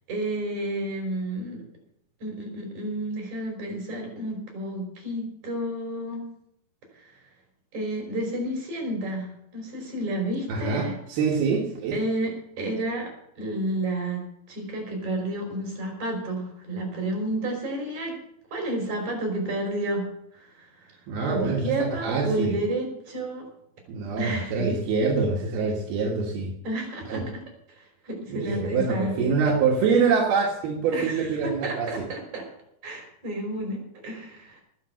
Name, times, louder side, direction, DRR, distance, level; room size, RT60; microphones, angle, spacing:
voice 1, 0.1-1.6 2.2-6.3 7.0-7.1 7.7-11.0 11.9-14.2 14.5-18.1 18.5-20.1 20.3-20.9 21.3-23.5 24.2-24.7 26.6-27.4 27.7-29.3 29.9-30.0 30.9-32.4 32.8-34.6, right 1 dB, 50° right, 1 dB, 6.4 m, -31 dB
voice 2, 10.5-12.0 21.1-22.6 23.9-26.5 27.1-27.3 28.3-32.1, right 5 dB, 85° right, -1 dB, 3.6 m, -25 dB
19.5 x 7.4 x 6.8 m, 0.74 s
omnidirectional pair, 4.3 m